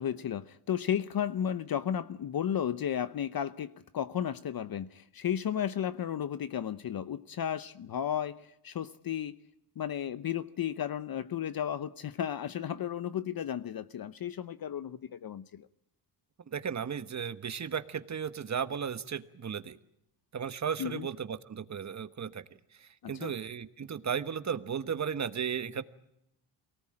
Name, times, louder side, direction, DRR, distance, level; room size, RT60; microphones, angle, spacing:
voice 1, 0.0-9.4 9.8-15.7 20.8-21.1 23.0-23.3, left 9 dB, 45° left, 14 dB, 0.8 m, -34 dB
voice 2, 16.5-19.8 20.3-22.4 22.8-25.8, right 7 dB, 35° right, 12 dB, 1.3 m, -35 dB
24.0 x 18.5 x 8.8 m, 0.83 s
cardioid pair, 95°, 49 cm